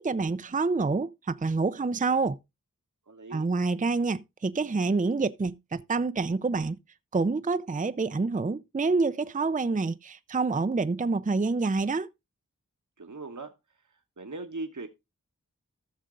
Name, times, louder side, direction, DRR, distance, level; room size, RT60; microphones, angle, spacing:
voice 1, 0.0-2.4 3.3-6.8 7.1-12.1, right 3 dB, 25° right, 0.5 m, -27 dB
voice 2, 3.1-3.5 13.0-13.5 14.2-14.9, right 3 dB, 65° right, 1.2 m, -39 dB
14.0 x 6.5 x 3.7 m
wide cardioid pair, 45°, 32 cm